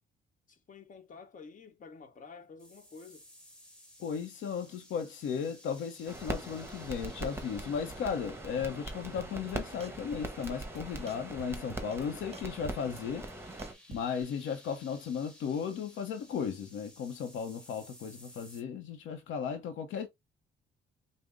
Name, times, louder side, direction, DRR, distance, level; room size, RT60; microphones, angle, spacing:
voice 1, 0.5-3.2, left 5 dB, 40° left, 1.1 m, -50 dB
sound 1, 2.6-18.6, left 1 dB, 5° left, 1.6 m, -58 dB
voice 2, 4.0-13.3 13.9-20.1, left 7 dB, 80° left, 0.7 m, -35 dB
sound 2, 6.1-13.7, right 2 dB, 10° right, 1.1 m, -41 dB
sound 3, 9.2-9.5 9.8-10.5 10.8-12.1 12.3-14.2, right 5 dB, 30° right, 0.8 m, -49 dB
5.1 x 2.0 x 3.4 m
cardioid pair, 90°, 20 cm